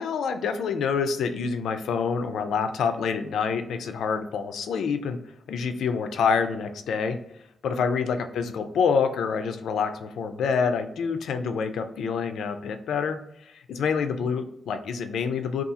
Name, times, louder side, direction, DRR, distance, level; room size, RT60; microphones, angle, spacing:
voice 1, 0.0-5.2 5.5-7.2 7.6-15.6, left 6 dB, 85° left, 8 dB, 0.3 m, -27 dB
2.7 x 2.3 x 2.4 m, 0.77 s
cardioid pair, 60°, 0 cm